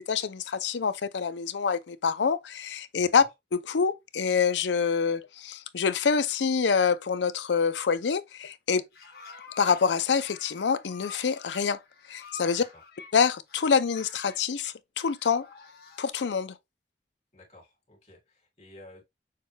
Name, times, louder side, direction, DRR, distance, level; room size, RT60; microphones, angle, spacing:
voice 1, 0.0-3.2 3.5-8.8 9.6-11.8 12.1-12.6 13.1-15.5 16.0-16.5, left 6 dB, 90° left, 0.5 m, -26 dB
voice 2, 2.9-3.3 12.5-12.8 17.3-19.0, left 1 dB, 35° left, 2.2 m, -52 dB
sound 1, 8.7-9.9 10.1-13.1 13.5-14.4 15.0-16.1, left 5 dB, 60° left, 1.1 m, -48 dB
6.5 x 2.3 x 3.2 m
head